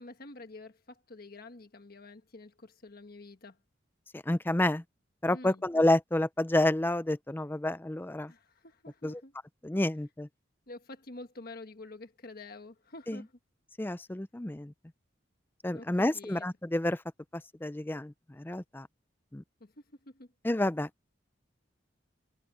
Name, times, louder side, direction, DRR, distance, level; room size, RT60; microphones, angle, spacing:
voice 1, 0.0-3.6 5.3-5.6 8.3-9.3 10.7-13.3 15.7-16.5 19.6-19.7 20.0-20.3, left 2 dB, 55° left, 1.4 m, -48 dB
voice 2, 4.1-4.8 5.2-8.3 9.0-9.2 9.6-10.3 13.1-13.2 13.8-14.7 15.6-17.0 17.6-18.9 19.3-19.4 20.4-20.9, left 1 dB, 10° left, 0.5 m, -29 dB
head